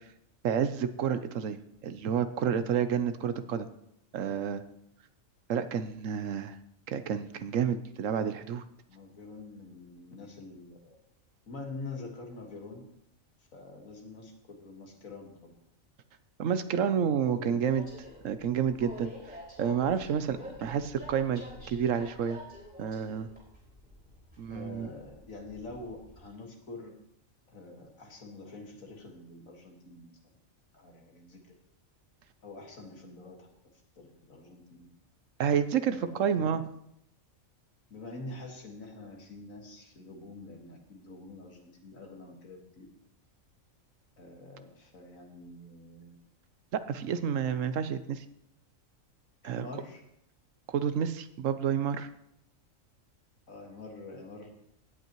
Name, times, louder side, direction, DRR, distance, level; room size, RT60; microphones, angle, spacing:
voice 1, 0.4-1.6 1.8-3.7 4.1-4.6 5.5-6.6 6.9-8.6 16.4-17.9 18.2-22.4 22.8-23.3 24.4-24.9 35.4-36.6 46.7-48.2 49.4-49.7 50.7-52.1, right 8 dB, 70° right, 11 dB, 1.1 m, -30 dB
voice 2, 8.9-11.0 11.5-12.8 13.5-15.6 17.1-17.8 20.3-20.6 24.5-26.9 27.5-30.1 30.7-31.5 32.4-33.5 34.0-34.9 35.9-36.6 37.9-42.9 44.2-46.2 49.4-50.0 53.5-54.5, left 3 dB, 75° left, 1 dB, 2.2 m, -46 dB
Train, 17.6-26.2, equal, 5° right, 5.2 m, -48 dB
17.5 x 8.2 x 3.0 m, 0.75 s
omnidirectional pair, 1.4 m